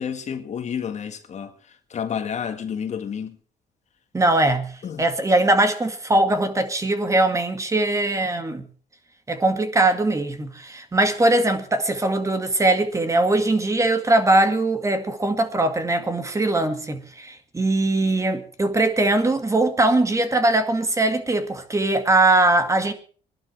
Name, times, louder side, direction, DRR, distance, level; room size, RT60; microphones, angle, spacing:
voice 1, 0.0-3.4 4.8-5.0, left 7 dB, 45° left, 1.9 m, -30 dB
voice 2, 4.1-4.7 5.0-8.6 9.3-22.9, right 2 dB, 20° right, 2.2 m, -21 dB
21.0 x 12.0 x 4.7 m
cardioid pair, 110°, 17 cm